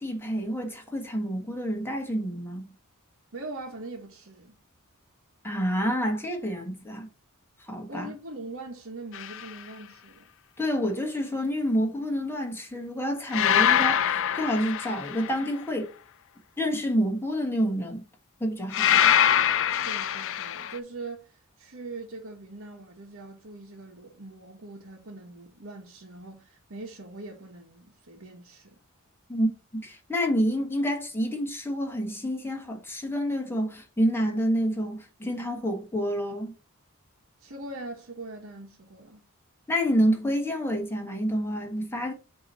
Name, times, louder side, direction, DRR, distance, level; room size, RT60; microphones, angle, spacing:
voice 1, 0.0-2.7 5.4-7.1 7.6-8.1 10.6-15.9 16.6-18.0 18.4-19.1 29.3-36.5 39.7-42.1, equal, 10° left, 1.5 m, -28 dB
voice 2, 3.3-4.6 7.9-10.3 19.8-28.8 37.4-39.3, right 2 dB, 60° right, 1.3 m, -42 dB
sound 1, 9.1-9.5 13.3-15.5 18.7-20.8, left 9 dB, 65° left, 0.5 m, -24 dB
7.6 x 3.0 x 5.3 m
head